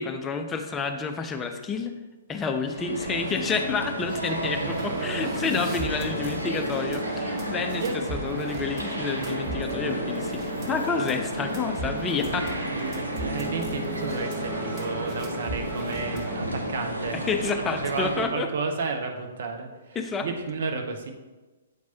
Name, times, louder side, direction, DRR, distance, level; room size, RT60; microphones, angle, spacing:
voice 1, 0.0-2.0 2.3-12.6 17.1-18.5 20.0-20.3, left 4 dB, 15° left, 6 dB, 0.5 m, -29 dB
sound 1, 2.6-18.3, right 1 dB, 80° right, 0.8 m, -32 dB
sound 2, 4.1-4.2 4.5-16.4, right 1 dB, 25° right, 1.0 m, -37 dB
voice 2, 4.6-5.4 7.8-7.9 12.7-21.1, right 4 dB, 55° right, 4 dB, 0.8 m, -32 dB
8.0 x 4.6 x 2.8 m, 1.2 s
figure-of-eight pair, 120°, 0 cm